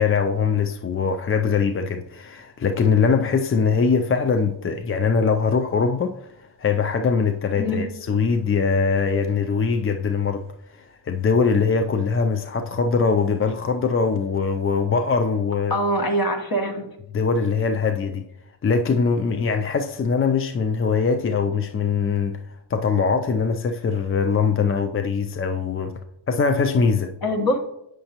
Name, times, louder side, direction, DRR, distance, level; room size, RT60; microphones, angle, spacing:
voice 1, 0.0-6.3 6.6-10.4 10.7-15.8 17.1-18.2 18.6-22.4 22.7-25.9 26.3-27.1, left 5 dB, 30° left, 0.4 m, -22 dB
voice 2, 15.7-16.9 27.2-27.6, equal, 50° left, 1.3 m, -23 dB
7.7 x 6.2 x 2.9 m
cardioid pair, 85°, 46 cm